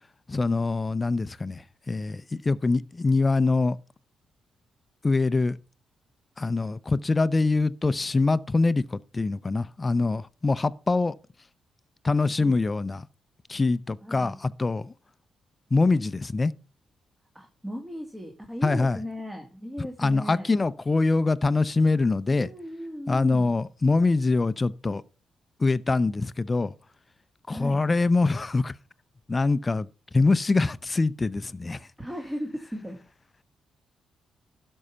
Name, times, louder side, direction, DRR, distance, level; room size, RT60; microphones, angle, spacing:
voice 1, 0.3-3.8 5.0-5.6 6.4-11.1 12.0-13.1 13.5-14.9 15.7-16.5 18.6-19.0 20.0-22.5 23.1-25.0 25.6-26.7 27.5-28.7 29.3-29.9 30.1-31.8, left 3 dB, 30° left, 0.6 m, -24 dB
voice 2, 14.0-14.4 17.3-20.5 22.3-23.5 27.5-27.8 31.7-33.0, equal, 10° right, 1.9 m, -37 dB
12.0 x 5.5 x 5.7 m
cardioid pair, 70°, 0 cm